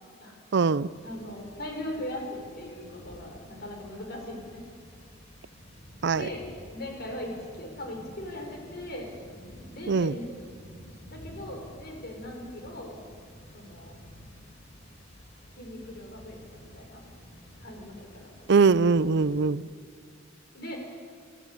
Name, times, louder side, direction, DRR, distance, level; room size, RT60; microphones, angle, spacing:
voice 1, 0.5-0.9 6.0-6.3 9.9-10.1 18.5-19.6, right 4 dB, 60° right, 18 dB, 0.5 m, -22 dB
sound 1, 0.9-19.4, equal, 35° left, 5.7 m, -50 dB
voice 2, 1.0-4.6 6.1-6.4 6.7-7.3 7.6-9.1 9.7-10.3 11.1-13.0 13.5-14.0 15.6-17.0 17.6-18.7 20.5-20.8, left 1 dB, 55° left, 1 dB, 5.7 m, -39 dB
27.5 x 14.5 x 8.5 m, 2.2 s
head